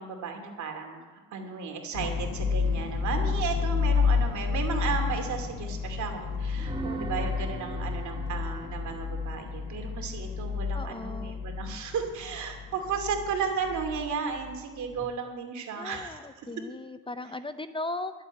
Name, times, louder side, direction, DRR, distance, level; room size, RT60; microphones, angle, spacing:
voice 1, 0.0-16.5 17.2-17.3, right 6 dB, 70° right, 3 dB, 2.6 m, -34 dB
sound 1, 1.9-14.8, left 5 dB, 85° left, 1.3 m, -31 dB
sound 2, 6.5-10.4 14.9-15.1, right 2 dB, 15° right, 1.3 m, -40 dB
voice 2, 10.7-11.4 15.8-18.1, left 2 dB, 15° left, 11 dB, 0.6 m, -37 dB
12.0 x 7.4 x 8.9 m, 1.3 s
cardioid pair, 90°, 30 cm